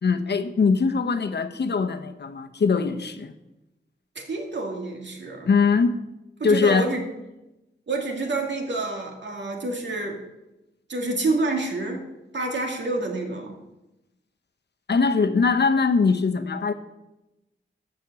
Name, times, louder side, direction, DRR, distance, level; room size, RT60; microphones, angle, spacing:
voice 1, 0.0-3.3 5.5-6.0 6.4-7.0 14.9-16.7, left 5 dB, 60° left, 8 dB, 0.8 m, -22 dB
voice 2, 4.2-5.5 6.4-7.0 7.9-10.2 10.9-12.1 12.3-13.6, right 2 dB, 70° right, 1 dB, 2.3 m, -28 dB
13.0 x 6.1 x 7.5 m, 0.97 s
wide cardioid pair, 125°, 20 cm